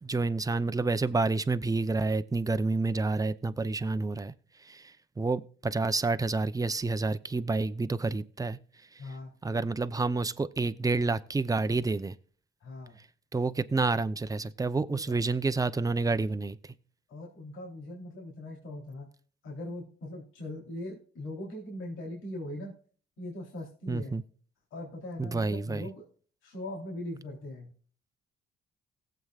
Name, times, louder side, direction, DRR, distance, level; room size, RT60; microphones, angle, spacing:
voice 1, 0.0-4.3 4.6-8.6 8.9-9.0 9.4-12.2 13.3-16.7 23.9-24.2 25.2-25.9, right 3 dB, 15° right, 0.7 m, -29 dB
voice 2, 9.0-9.4 12.6-13.0 14.9-15.2 17.1-19.1 19.4-22.7 23.2-24.2 24.7-26.1 26.4-27.7, left 1 dB, 80° left, 3.5 m, -40 dB
18.0 x 7.9 x 2.4 m
cardioid pair, 90°, 20 cm